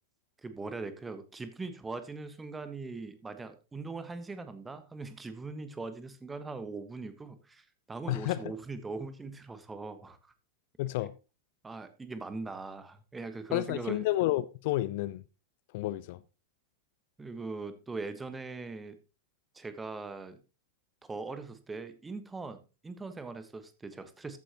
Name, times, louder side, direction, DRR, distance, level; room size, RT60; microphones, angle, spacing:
voice 1, 0.4-10.2 11.6-14.0 17.2-19.0 19.5-20.4 21.0-24.4, right 3 dB, 10° right, 1.3 m, -41 dB
voice 2, 8.1-8.4 10.8-11.1 13.5-15.2 15.7-16.2, left 16 dB, 50° left, 0.4 m, -30 dB
13.5 x 9.1 x 3.0 m
figure-of-eight pair, 90°, 0 cm